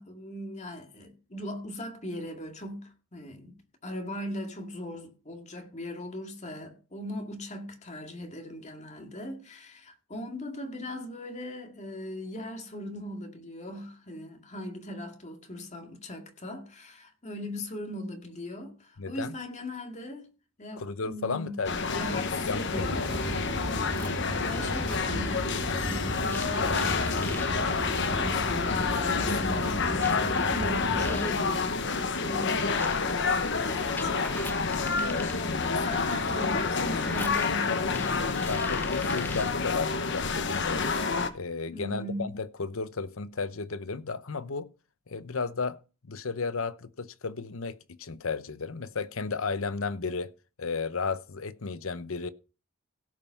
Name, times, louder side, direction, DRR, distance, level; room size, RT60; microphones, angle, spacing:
voice 1, 0.0-20.3 20.6-21.6 21.9-23.2 23.7-25.4 25.8-34.8 35.1-38.6 41.7-42.4, left 1 dB, 35° left, 2.2 m, -39 dB
voice 2, 19.0-19.3 20.8-23.0 34.0-34.1 34.7-34.8 37.7-38.0 38.5-41.0 41.3-44.7 45.1-45.8 46.0-50.3 50.6-52.3, left 4 dB, 75° left, 0.8 m, -34 dB
sound 1, 21.6-41.3, left 4 dB, 60° left, 1.1 m, -28 dB
sound 2, 22.7-31.2, right 1 dB, 65° right, 1.9 m, -36 dB
sound 3, 23.1-25.1 26.2-27.5 28.6-28.7 30.0-39.6, left 2 dB, 10° left, 0.8 m, -44 dB
16.5 x 5.6 x 5.9 m
head